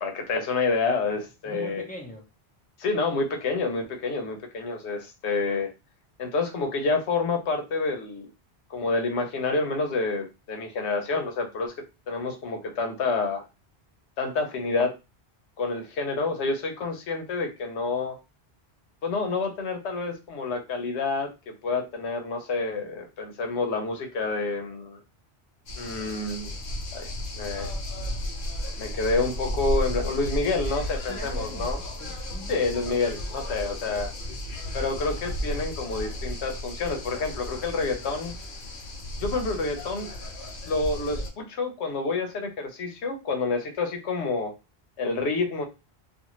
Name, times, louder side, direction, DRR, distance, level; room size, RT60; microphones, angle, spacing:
voice 1, 0.0-1.8 2.8-5.7 6.2-8.3 8.7-11.7 12.1-13.4 14.2-14.9 15.6-18.2 19.0-25.0 25.8-26.5 26.9-27.7 28.8-31.8 32.5-34.1 34.7-38.4 39.2-40.1 40.5-44.5 45.0-45.6, left 3 dB, 85° left, 1.0 m, -28 dB
voice 2, 1.4-2.2 31.1-32.6, left 1 dB, 10° left, 0.5 m, -41 dB
sound 1, 25.7-41.3, left 1 dB, 55° left, 0.8 m, -34 dB
2.5 x 2.4 x 2.9 m
omnidirectional pair, 1.1 m